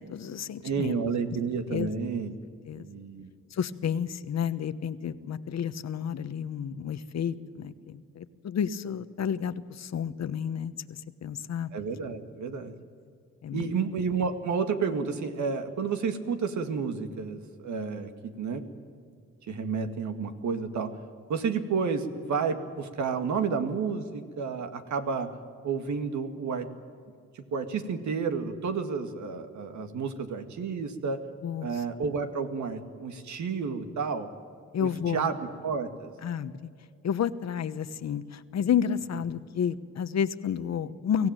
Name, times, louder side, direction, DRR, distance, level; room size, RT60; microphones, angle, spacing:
voice 1, 0.0-0.9 1.7-1.9 2.7-2.9 3.5-11.7 13.4-13.7 31.4-31.7 34.7-35.3 36.2-36.5 37.0-41.3, left 8 dB, 60° left, 13 dB, 1.1 m, -31 dB
voice 2, 0.6-2.3 2.7-3.3 11.7-12.7 13.5-18.6 19.5-20.9 21.3-25.3 25.6-26.7 27.3-31.2 31.6-34.3 34.8-36.1, right 5 dB, 70° right, 7 dB, 2.1 m, -31 dB
24.5 x 16.0 x 9.1 m, 2.2 s
cardioid pair, 90°, 30 cm